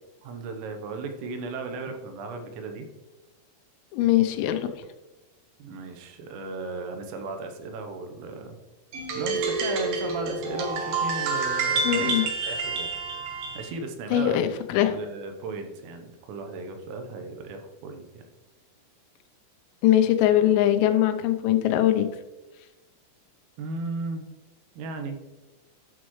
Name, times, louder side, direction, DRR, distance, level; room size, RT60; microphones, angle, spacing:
voice 1, 0.2-2.9 5.6-8.6 9.1-12.1 12.4-12.9 13.6-14.5 14.7-18.2 23.6-24.2 24.8-25.2, right 3 dB, 85° right, 5 dB, 3.5 m, -35 dB
voice 2, 3.9-4.9 11.8-12.2 14.1-14.9 19.8-22.1, left 12 dB, 90° left, 8 dB, 3.3 m, -21 dB
sound 1, 8.9-13.7, right 4 dB, 70° right, 2.4 m, -28 dB
12.0 x 6.3 x 3.1 m, 1.1 s
omnidirectional pair, 5.8 m